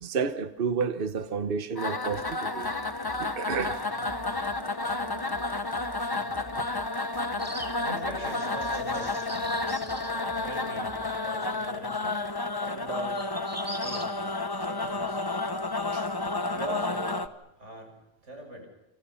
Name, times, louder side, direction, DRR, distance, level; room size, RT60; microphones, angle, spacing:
voice 1, 0.0-2.7 3.2-3.8 15.9-16.1, right 5 dB, 50° right, 1.2 m, -30 dB
sound 1, 1.8-17.3, left 3 dB, 20° left, 1.0 m, -31 dB
sound 2, 2.0-11.5, right 1 dB, 30° right, 2.2 m, -49 dB
sound 3, 7.4-10.1 13.1-14.0, right 1 dB, 10° right, 2.3 m, -41 dB
voice 2, 7.8-9.6 10.4-12.2 12.6-13.3 13.7-14.3 14.6-15.5 16.4-17.3 17.6-17.9 18.2-18.7, right 1 dB, 90° right, 7.0 m, -41 dB
29.0 x 26.5 x 5.7 m
omnidirectional pair, 1.2 m